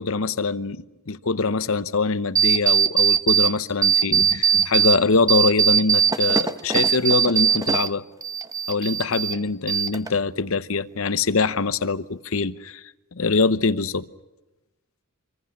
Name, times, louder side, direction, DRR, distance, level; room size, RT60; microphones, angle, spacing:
voice 1, 0.0-8.0 8.7-12.8 13.1-14.1, left 4 dB, 65° left, 0.9 m, -23 dB
sound 1, 2.4-3.5 3.8-5.0 5.3-7.9 8.2-9.4 9.7-10.3, right 7 dB, 15° right, 0.9 m, -20 dB
26.0 x 25.0 x 6.0 m
head